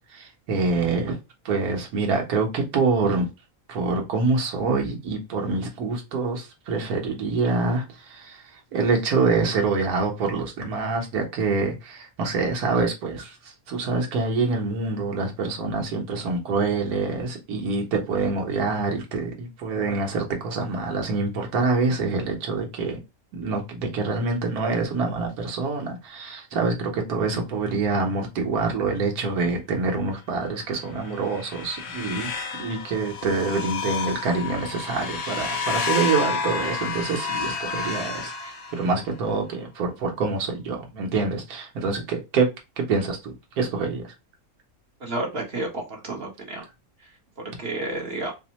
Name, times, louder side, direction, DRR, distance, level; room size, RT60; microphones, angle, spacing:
voice 1, 0.1-1.2 1.4-3.3 3.7-8.4 8.7-13.4 13.7-23.0 23.3-32.3 32.6-38.3 38.7-42.5 42.8-44.1, right 4 dB, 85° right, 1 dB, 1.5 m, -26 dB
sound 1, 30.8-39.1, left 5 dB, 60° left, 0.8 m, -30 dB
voice 2, 45.0-46.6 47.6-48.3, right 2 dB, 45° right, -1 dB, 1.2 m, -30 dB
4.4 x 2.1 x 2.9 m, 0.26 s
omnidirectional pair, 1.5 m